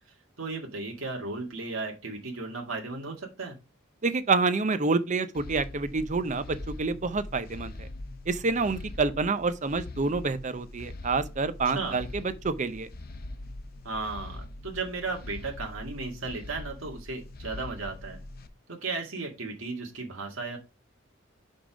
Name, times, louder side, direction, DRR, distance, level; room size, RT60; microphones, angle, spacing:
voice 1, 0.4-3.6 11.7-12.0 13.8-18.2 18.7-20.6, right 3 dB, 80° right, 1.8 m, -35 dB
voice 2, 4.0-7.9 8.3-12.9, right 4 dB, 40° right, 0.6 m, -28 dB
sound 1, 5.3-18.5, left 2 dB, 50° left, 0.7 m, -42 dB
5.4 x 5.2 x 5.0 m
head